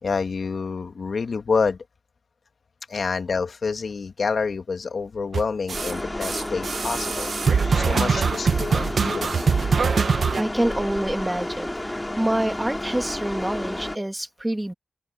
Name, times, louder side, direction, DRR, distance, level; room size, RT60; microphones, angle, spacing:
voice 1, 0.0-1.8 2.9-7.3 7.7-9.4, left 5 dB, 75° left, 2.1 m, -27 dB
sound 1, 5.3-5.9 6.2-10.4, right 5 dB, 80° right, 1.0 m, -23 dB
sound 2, 5.7-14.0, left 1 dB, 20° left, 2.4 m, -31 dB
voice 2, 10.0-14.7, right 1 dB, 15° right, 2.6 m, -27 dB
open air
cardioid pair, 40°, 0 cm